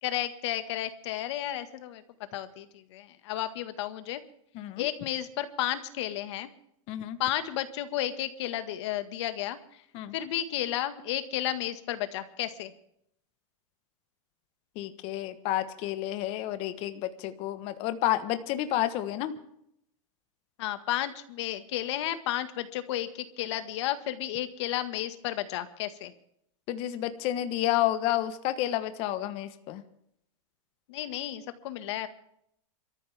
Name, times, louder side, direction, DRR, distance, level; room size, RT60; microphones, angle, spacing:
voice 1, 0.0-2.0 2.3-4.2 4.8-6.5 7.2-9.8 10.1-12.7 20.6-26.1 30.9-32.1, left 13 dB, 55° left, 10 dB, 1.8 m, -32 dB
voice 2, 4.5-4.9 6.9-7.2 9.9-10.1 14.7-19.3 26.7-29.8, left 13 dB, 35° left, 11 dB, 1.2 m, -30 dB
26.5 x 14.0 x 3.5 m, 0.72 s
supercardioid pair, 160°, 17 cm